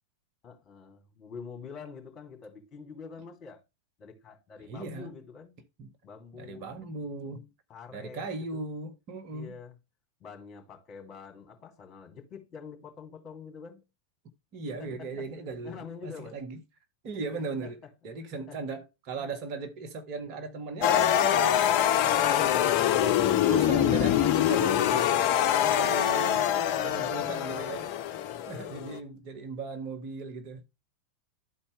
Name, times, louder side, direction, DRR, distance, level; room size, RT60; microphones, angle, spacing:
voice 1, 0.4-3.6 4.0-5.6 6.0-6.6 7.7-8.3 8.5-8.6 9.3-9.7 10.2-13.8 14.8-15.1 15.6-16.4 17.6-17.7 18.5-18.6 22.3-23.0 27.2-27.6 28.3-28.7, left 5 dB, 30° left, 2.5 m, -46 dB
voice 2, 4.6-5.2 5.8-5.9 6.3-7.5 7.9-9.6 14.5-16.6 17.0-17.8 18.0-22.0 22.9-25.1 25.6-26.5 26.8-27.9 28.5-30.6, right 4 dB, 40° right, 1.1 m, -38 dB
sound 1, 20.8-29.0, left 11 dB, 45° left, 0.6 m, -24 dB
12.0 x 4.2 x 3.2 m
figure-of-eight pair, 90°, 0 cm